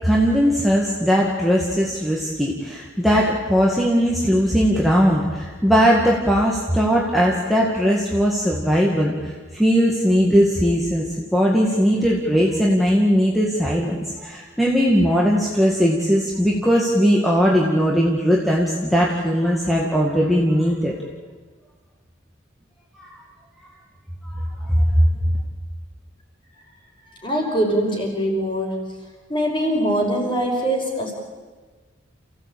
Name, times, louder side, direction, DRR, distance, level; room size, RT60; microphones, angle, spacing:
voice 1, 0.0-20.9 22.9-23.2 24.2-25.1, equal, ahead, -3 dB, 2.2 m, -19 dB
voice 2, 27.2-28.9 29.3-31.1, right 1 dB, 25° left, 0 dB, 5.4 m, -22 dB
29.0 x 16.5 x 8.8 m, 1.4 s
head